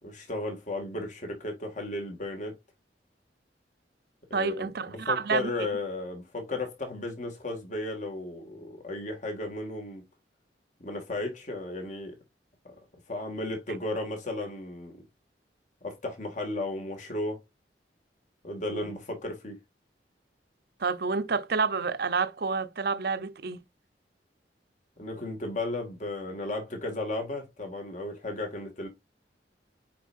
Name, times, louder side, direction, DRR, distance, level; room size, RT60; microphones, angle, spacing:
voice 1, 0.0-2.5 4.3-10.0 10.8-12.2 13.1-15.0 15.8-17.4 18.4-19.6 25.0-28.9, left 2 dB, 45° left, 2.1 m, -34 dB
voice 2, 4.3-5.5 18.7-18.9 20.8-23.6, right 5 dB, 60° right, 0.7 m, -29 dB
8.5 x 4.6 x 2.6 m
head